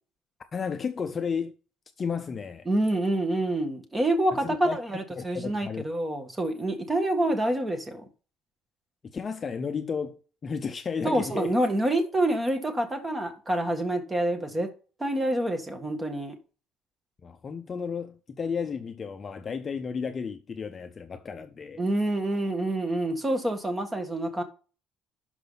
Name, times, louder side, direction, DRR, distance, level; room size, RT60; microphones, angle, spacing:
voice 1, 0.5-1.5 2.0-2.7 4.4-4.8 5.2-5.8 9.1-11.5 17.2-21.8, left 6 dB, 25° left, 0.6 m, -33 dB
voice 2, 2.7-8.0 11.0-14.7 15.0-16.4 21.8-24.4, right 1 dB, 15° right, 1.7 m, -27 dB
12.0 x 5.1 x 4.0 m
cardioid pair, 155°, 0 cm